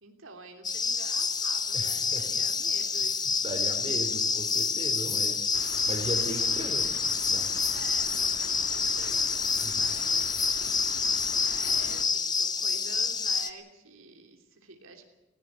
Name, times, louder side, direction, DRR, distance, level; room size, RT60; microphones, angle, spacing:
voice 1, 0.0-3.2 3.5-3.7 7.7-10.4 11.1-15.0, right 3 dB, 85° right, 4 dB, 3.0 m, -49 dB
sound 1, 0.6-13.5, left 5 dB, 20° left, 1.0 m, -28 dB
voice 2, 1.7-2.2 3.4-6.9 7.3-7.5 9.6-9.9, right 1 dB, 25° right, 5 dB, 3.4 m, -37 dB
sound 2, 5.5-12.1, left 4 dB, 90° left, 1.5 m, -43 dB
18.0 x 17.5 x 9.8 m, 0.93 s
head